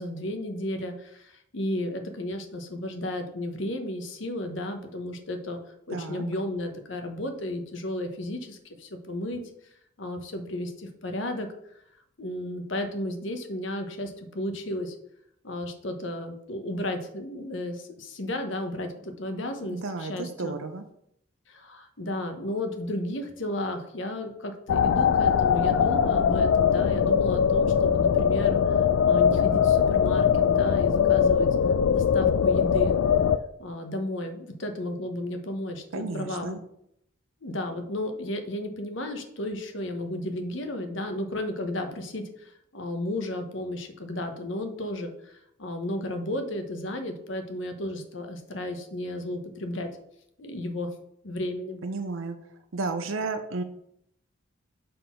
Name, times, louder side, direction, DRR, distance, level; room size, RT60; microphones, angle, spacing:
voice 1, 0.0-9.4 10.0-11.5 11.7-11.8 12.2-15.0 15.4-20.6 21.5-31.5 31.9-33.0 33.6-36.6 37.4-49.9 50.4-50.9 51.2-51.8, left 1 dB, 70° left, 6 dB, 1.0 m, -33 dB
voice 2, 5.9-6.2 19.7-20.8 35.9-36.6 51.8-52.4 52.7-53.6, right 3 dB, 80° right, 7 dB, 0.6 m, -32 dB
sound 1, 24.7-33.4, left 7 dB, 85° left, 0.3 m, -21 dB
6.9 x 3.8 x 5.7 m, 0.73 s
head